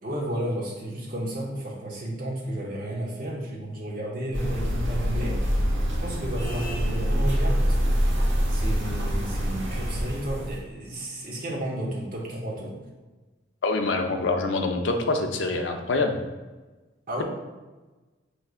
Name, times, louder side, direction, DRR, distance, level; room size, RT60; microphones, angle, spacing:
voice 1, 0.0-5.4 6.0-8.0 8.5-12.8 17.1-17.2, right 1 dB, 45° right, -3 dB, 0.8 m, -32 dB
sound 1, 4.3-10.6, equal, 75° right, 0.9 m, -25 dB
voice 2, 13.6-16.2, left 3 dB, 65° left, 5 dB, 0.4 m, -25 dB
4.8 x 3.2 x 2.4 m, 1.2 s
head